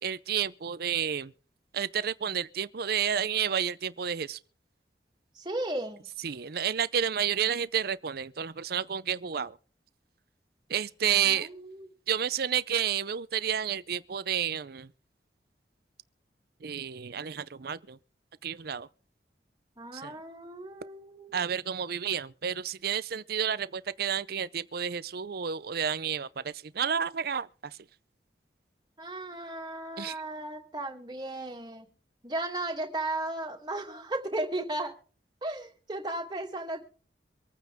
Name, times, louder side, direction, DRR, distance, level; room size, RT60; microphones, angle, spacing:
voice 1, 0.0-1.3 1.7-4.4 6.2-9.6 10.7-11.5 12.1-14.9 16.6-18.0 18.4-18.9 19.9-20.2 21.3-27.8 30.0-30.2, right 8 dB, 60° right, 0.6 m, -30 dB
voice 2, 5.3-6.1 11.2-11.9 19.8-21.5 29.0-31.9 32.2-34.9 35.4-36.8, right 2 dB, 25° right, 2.6 m, -35 dB
25.0 x 9.3 x 3.6 m
head